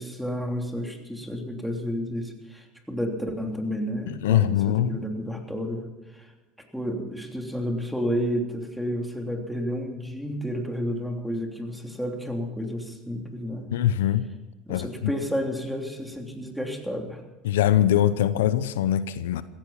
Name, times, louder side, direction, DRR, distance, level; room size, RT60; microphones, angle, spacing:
voice 1, 0.0-6.3 6.7-13.7 14.7-17.2, equal, ahead, 3.2 m, -31 dB
voice 2, 4.1-5.0 13.7-14.3 14.7-15.1 17.4-19.4, left 11 dB, 85° left, 0.7 m, -22 dB
16.0 x 15.0 x 5.7 m
supercardioid pair, 90°, 0 cm